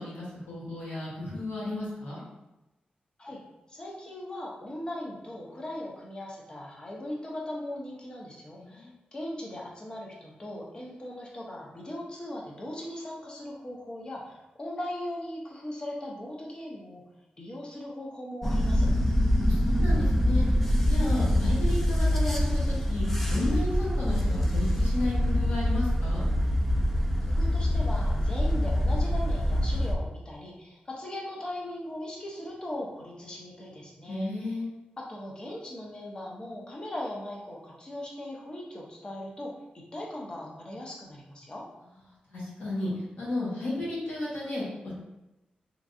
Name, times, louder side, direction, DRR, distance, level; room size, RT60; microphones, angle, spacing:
voice 1, 0.0-2.2 8.5-8.9 19.3-20.6 20.9-26.3 34.0-34.7 42.3-44.9, left 2 dB, 85° left, -7 dB, 1.4 m, -33 dB
voice 2, 3.7-17.0 17.4-18.9 27.3-34.3 35.0-39.5 39.9-41.7, left 1 dB, 30° left, -2 dB, 0.7 m, -39 dB
sound 1, 18.4-29.9, equal, 5° left, 0.3 m, -25 dB
3.5 x 3.0 x 2.6 m, 0.98 s
wide cardioid pair, 140°, 3 cm